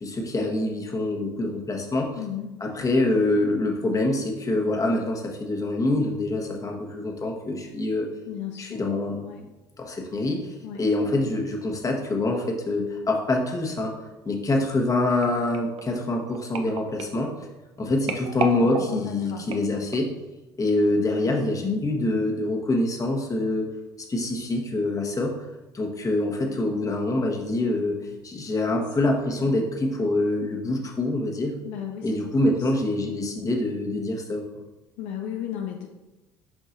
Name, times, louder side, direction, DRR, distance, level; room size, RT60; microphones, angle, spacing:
voice 1, 0.0-2.2 2.6-8.1 8.6-9.3 9.8-10.4 10.8-13.9 14.2-17.3 17.8-20.1 20.6-23.7 24.0-25.3 25.7-28.0 28.2-31.6 32.0-34.4, left 2 dB, 25° left, 1 dB, 1.3 m, -25 dB
voice 2, 2.1-2.5 8.3-8.8 9.2-9.4 10.6-10.8 18.4-19.8 21.0-21.3 28.7-28.8 29.0-29.5 31.6-32.1 32.5-32.6 35.0-35.9, left 9 dB, 65° left, 2 dB, 0.6 m, -36 dB
sound 1, 15.2-20.2 20.8-21.1 21.3-21.4, right 5 dB, 55° right, 0.7 m, -35 dB
7.4 x 5.3 x 2.6 m, 1.1 s
hypercardioid pair, 60°, 12 cm